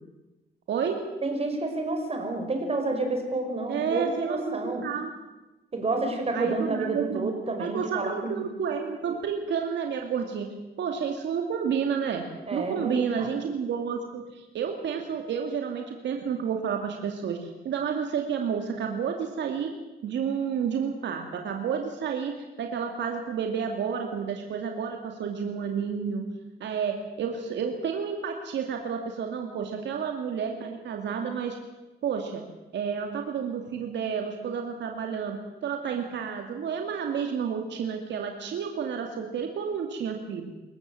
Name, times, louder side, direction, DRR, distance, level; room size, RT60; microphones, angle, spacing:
voice 1, 0.7-1.1 3.7-5.1 6.3-7.3 7.6-19.7 20.0-22.3 22.6-26.3 26.6-31.6 32.0-32.4 32.7-40.5, right 7 dB, 80° right, 3 dB, 2.5 m, -30 dB
voice 2, 1.2-4.8 5.7-8.5 12.5-13.3, right 2 dB, 35° right, 4 dB, 5.3 m, -30 dB
26.5 x 15.0 x 7.8 m, 1.1 s
cardioid pair, 105°, 18 cm